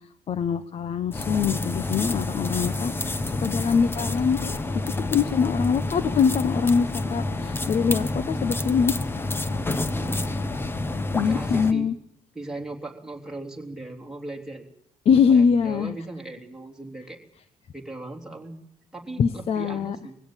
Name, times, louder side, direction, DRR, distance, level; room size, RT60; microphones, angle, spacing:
voice 1, 0.3-2.9 3.4-4.5 5.1-9.0 11.1-11.9 15.1-15.9 19.2-20.0, left 6 dB, 45° left, 14 dB, 0.9 m, -23 dB
sound 1, 1.1-11.7, left 2 dB, 15° left, 1.0 m, -28 dB
voice 2, 9.9-10.4 10.9-11.9 12.4-14.7 15.3-17.2 17.7-18.6 18.9-20.2, right 2 dB, 5° right, 1 dB, 3.4 m, -38 dB
21.0 x 16.5 x 9.0 m, 0.71 s
cardioid pair, 145°, 14 cm